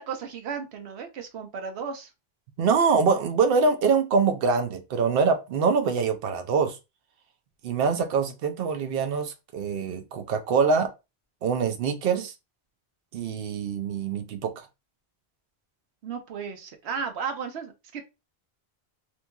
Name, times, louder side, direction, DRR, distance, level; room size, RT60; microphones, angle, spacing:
voice 1, 0.0-2.1 16.0-18.0, right 6 dB, 90° right, 0.9 m, -34 dB
voice 2, 2.6-6.8 7.6-10.9 11.4-12.3 13.1-14.7, right 5 dB, 65° right, 0.8 m, -24 dB
3.0 x 2.5 x 2.2 m
omnidirectional pair, 1.1 m